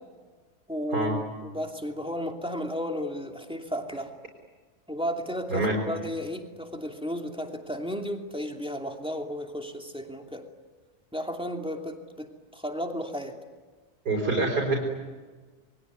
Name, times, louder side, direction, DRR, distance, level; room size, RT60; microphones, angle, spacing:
voice 1, 0.7-4.1 4.9-10.4 11.1-13.4, equal, 5° right, 3 dB, 2.7 m, -33 dB
voice 2, 14.1-14.8, right 3 dB, 90° right, -1 dB, 5.3 m, -25 dB
27.5 x 22.5 x 9.6 m, 1.4 s
omnidirectional pair, 1.7 m